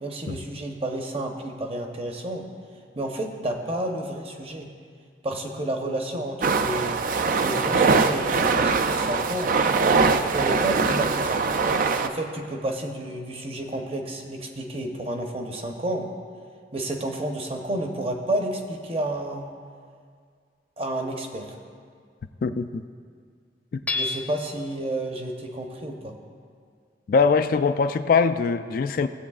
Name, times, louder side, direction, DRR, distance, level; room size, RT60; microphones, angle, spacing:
voice 1, 0.0-2.5 2.9-4.7 5.2-7.0 7.4-9.5 10.3-11.4 12.0-16.1 16.7-19.5 20.8-21.5 23.9-26.2, right 1 dB, 35° right, 3 dB, 0.9 m, -30 dB
sound 1, 6.4-12.1, right 4 dB, 50° right, 0.4 m, -22 dB
voice 2, 22.4-22.8 23.7-23.8 27.1-29.1, left 5 dB, 50° left, 10 dB, 0.3 m, -22 dB
Hammer / Chink clink, 23.9-24.7, left 3 dB, 10° left, 0.6 m, -29 dB
17.0 x 7.9 x 2.4 m, 2.1 s
head